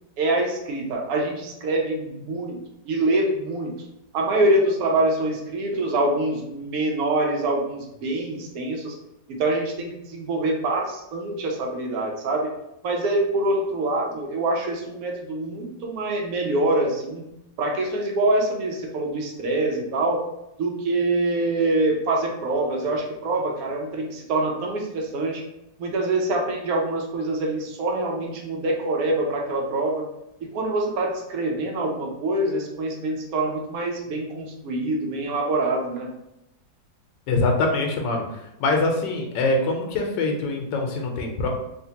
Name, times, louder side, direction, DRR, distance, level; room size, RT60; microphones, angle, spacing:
voice 1, 0.2-2.6 2.9-3.8 4.1-8.9 9.3-12.5 12.8-17.3 17.6-20.2 20.6-25.4 25.8-30.1 30.4-36.1, right 2 dB, 65° right, 0 dB, 1.0 m, -25 dB
voice 2, 37.3-38.2 38.6-41.5, left 2 dB, 90° left, 2 dB, 1.3 m, -23 dB
3.5 x 2.5 x 2.8 m, 0.86 s
omnidirectional pair, 1.9 m